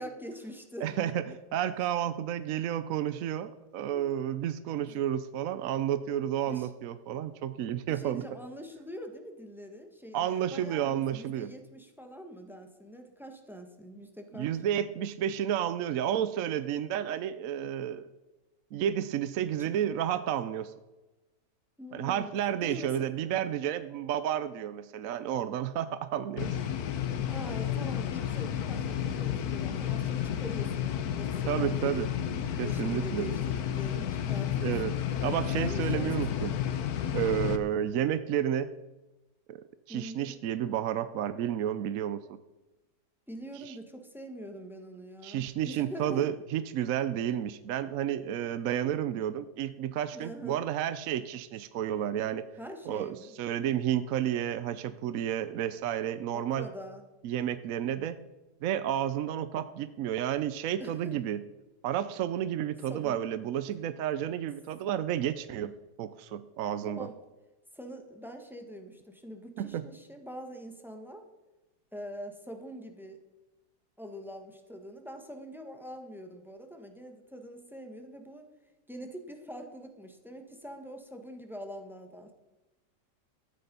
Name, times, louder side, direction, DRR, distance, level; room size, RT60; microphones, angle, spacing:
voice 1, 0.0-1.1 1.8-1.9 3.9-4.1 4.8-5.0 6.4-6.7 7.9-14.6 19.6-19.7 21.8-22.4 22.6-23.1 27.3-32.1 32.6-34.9 35.4-36.3 37.1-37.4 39.9-40.4 43.3-46.3 50.1-50.6 52.6-53.3 56.3-57.0 60.8-61.2 62.9-63.2 66.9-67.2 67.7-71.2 71.9-73.2 74.0-78.5 78.9-82.3, equal, ahead, 5 dB, 1.3 m, -44 dB
voice 2, 0.8-8.2 10.1-11.5 14.3-18.1 18.7-20.7 21.9-26.6 31.5-32.1 32.6-33.3 34.6-34.9 35.2-36.5 37.1-38.7 39.5-39.6 39.9-42.4 43.7-43.8 45.2-52.5 52.9-56.7 57.2-58.2 58.6-61.4 61.8-67.1 69.6-69.8, right 10 dB, 65° right, 12 dB, 0.9 m, -31 dB
sound 1, 26.4-37.6, left 10 dB, 65° left, 1.3 m, -31 dB
13.5 x 9.0 x 5.4 m, 1.1 s
omnidirectional pair, 1.8 m